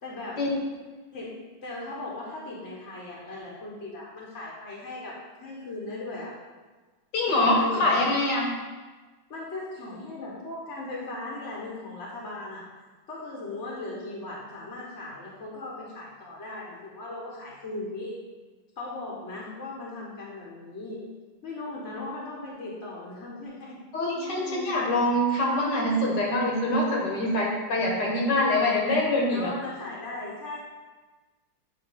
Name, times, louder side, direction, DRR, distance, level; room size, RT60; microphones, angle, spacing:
voice 1, 0.0-0.4 1.1-1.3 1.6-6.3 7.3-8.1 9.3-12.6 13.1-18.2 18.8-21.1 21.4-23.8 24.1-24.8 29.3-30.6, left 2 dB, 40° left, -4 dB, 1.4 m, -38 dB
voice 2, 7.1-8.5 23.9-29.5, left 1 dB, 60° left, -2 dB, 2.0 m, -24 dB
9.4 x 3.2 x 5.7 m, 1.3 s
omnidirectional pair, 2.2 m